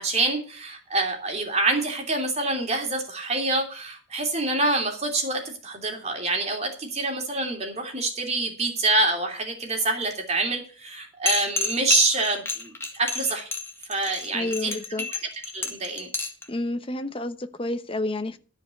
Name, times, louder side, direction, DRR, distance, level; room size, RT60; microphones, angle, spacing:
voice 1, 0.0-13.5 13.9-15.2 15.5-16.1, right 2 dB, 35° right, 2 dB, 3.0 m, -26 dB
sound 1, 11.3-16.4, left 4 dB, 15° left, 1.8 m, -29 dB
voice 2, 14.3-15.0 16.5-18.4, left 2 dB, 30° left, 9 dB, 1.0 m, -30 dB
13.5 x 5.3 x 8.3 m, 0.39 s
head